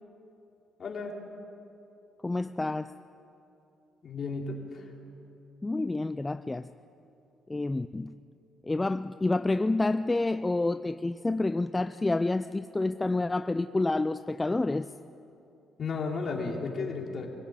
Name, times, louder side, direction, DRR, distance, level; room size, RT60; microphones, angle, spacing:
voice 1, 0.8-1.1 4.0-4.9 15.8-17.3, left 4 dB, 45° left, 0 dB, 3.8 m, -33 dB
voice 2, 2.2-2.9 5.6-6.7 7.5-8.1 8.6-14.9, left 2 dB, 15° left, 11 dB, 0.4 m, -28 dB
24.0 x 16.5 x 9.0 m, 2.8 s
cardioid pair, 105°, 0 cm